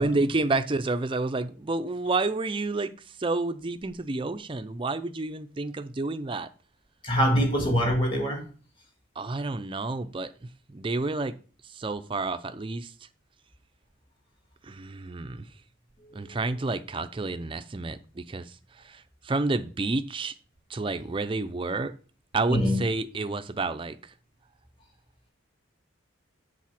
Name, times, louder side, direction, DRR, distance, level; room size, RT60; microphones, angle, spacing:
voice 1, 0.0-6.5 9.2-11.4 11.6-12.9 14.6-15.5 16.1-20.4 20.7-21.9 22.3-24.1, right 3 dB, 25° right, 0.4 m, -30 dB
voice 2, 7.0-8.5 16.0-16.4 22.5-22.8, equal, 25° left, 2.1 m, -24 dB
7.4 x 4.1 x 5.9 m
head